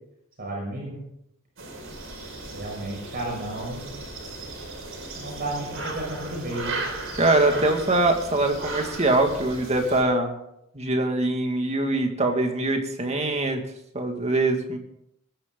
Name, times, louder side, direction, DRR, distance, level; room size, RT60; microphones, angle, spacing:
voice 1, 0.4-1.0 2.5-3.9 5.1-6.8, right 1 dB, 50° right, -3 dB, 6.3 m, -32 dB
sound 1, 1.6-10.0, right 2 dB, 70° right, 4.7 m, -36 dB
voice 2, 7.2-10.3 10.7-13.6 13.9-14.8, right 2 dB, 30° right, 4 dB, 2.0 m, -23 dB
21.0 x 10.5 x 3.9 m, 0.78 s
head